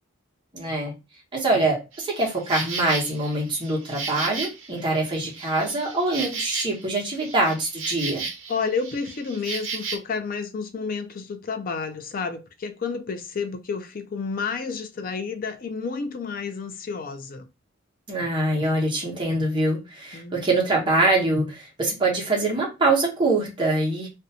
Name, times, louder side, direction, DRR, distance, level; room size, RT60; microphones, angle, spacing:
voice 1, 0.5-0.9 1.3-8.2 18.1-24.1, right 2 dB, 25° right, 1.0 m, -24 dB
Insect, 1.9-10.0, right 4 dB, 65° right, 0.7 m, -34 dB
voice 2, 8.5-17.5 20.1-20.4, left 5 dB, 40° left, 0.4 m, -30 dB
2.6 x 2.2 x 2.7 m
head